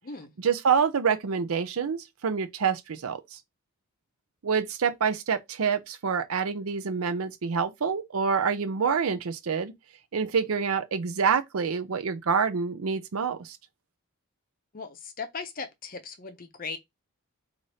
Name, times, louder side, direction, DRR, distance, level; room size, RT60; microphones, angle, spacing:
voice 1, 0.4-3.4 4.4-9.7 10.1-13.6, right 6 dB, 75° right, 0.5 m, -27 dB
voice 2, 14.7-16.8, left 4 dB, 40° left, 0.6 m, -38 dB
4.0 x 2.5 x 3.3 m
head